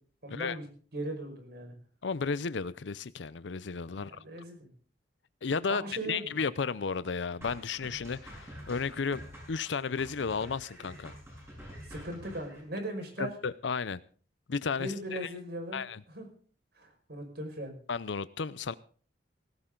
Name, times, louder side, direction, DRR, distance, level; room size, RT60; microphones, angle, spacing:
voice 1, 0.2-0.7 0.9-1.7 4.1-4.7 5.7-6.4 11.9-13.3 14.8-16.3 16.8-17.7, right 1 dB, 60° right, 5.4 m, -38 dB
voice 2, 2.0-4.1 5.4-9.2 9.5-11.1 13.2-14.0 14.5-15.3 15.7-16.0 17.9-18.7, left 5 dB, 85° left, 0.6 m, -33 dB
sound 1, 7.4-12.6, equal, 15° right, 7.7 m, -48 dB
18.0 x 16.0 x 3.8 m
head